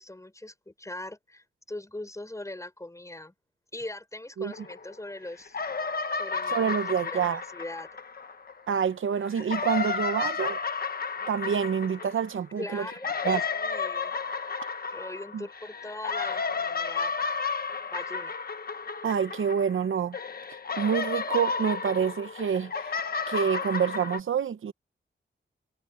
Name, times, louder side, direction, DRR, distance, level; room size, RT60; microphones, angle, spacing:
voice 1, 0.0-3.3 3.7-5.6 6.1-6.6 7.0-7.9 12.6-14.2 14.9-17.1 17.9-18.4, left 1 dB, 15° left, 5.1 m, -41 dB
sound 1, 4.5-5.2 5.5-8.7 9.3-19.8 20.1-24.2, left 5 dB, 50° left, 1.1 m, -32 dB
voice 2, 6.5-7.4 8.7-10.6 11.3-12.9 13.2-13.4 15.3-15.4 19.0-20.2 20.8-22.9 23.3-24.7, right 7 dB, 90° right, 0.8 m, -27 dB
wide cardioid pair, 120°, 20 cm